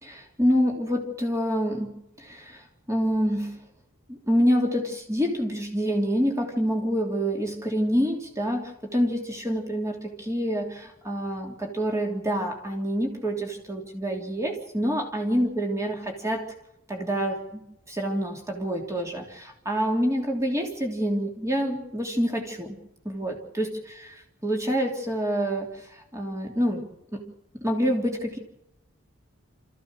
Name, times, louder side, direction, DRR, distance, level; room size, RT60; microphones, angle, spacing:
voice 1, 0.0-2.6 2.9-3.6 4.1-16.5 16.9-17.6 17.9-22.8 23.0-27.2 27.5-28.4, equal, 15° right, 1 dB, 3.1 m, -27 dB
28.0 x 15.0 x 6.5 m, 0.87 s
head